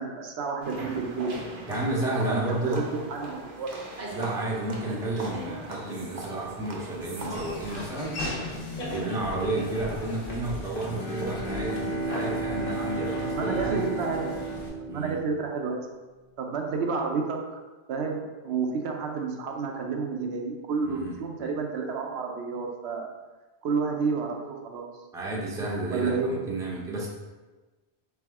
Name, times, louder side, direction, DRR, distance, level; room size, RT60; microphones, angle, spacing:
voice 1, 0.0-1.4 2.3-3.8 13.3-14.3 14.9-15.9 16.4-17.4 17.9-23.1 23.6-24.9 25.9-26.4, right 4 dB, 80° right, 2 dB, 0.9 m, -30 dB
sound 1, 0.6-7.9, right 2 dB, 50° right, 0.7 m, -39 dB
voice 2, 1.7-2.8 4.1-8.1 8.8-13.9 14.9-15.2 20.8-21.2 25.1-27.1, right 2 dB, 5° right, -4 dB, 0.5 m, -31 dB
Laughter / Walk footsteps, 7.2-14.7, left 2 dB, 60° left, 0.9 m, -37 dB
Bowed string instrument, 10.8-15.7, right 2 dB, 45° left, 0.5 m, -33 dB
3.4 x 3.3 x 3.5 m, 1.2 s
omnidirectional pair, 1.1 m